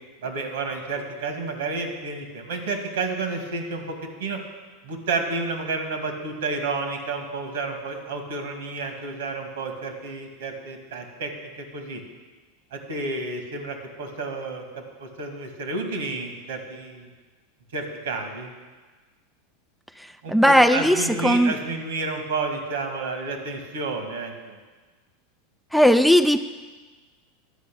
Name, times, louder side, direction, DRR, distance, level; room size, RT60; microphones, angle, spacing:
voice 1, 0.2-4.4 4.8-11.3 11.6-12.0 12.7-17.1 17.7-18.5 20.2-24.6, right 3 dB, 85° right, 4 dB, 2.1 m, -31 dB
voice 2, 20.0-21.5 25.7-26.4, equal, ahead, 9 dB, 0.4 m, -18 dB
11.5 x 5.5 x 8.5 m, 1.3 s
supercardioid pair, 115°, 0 cm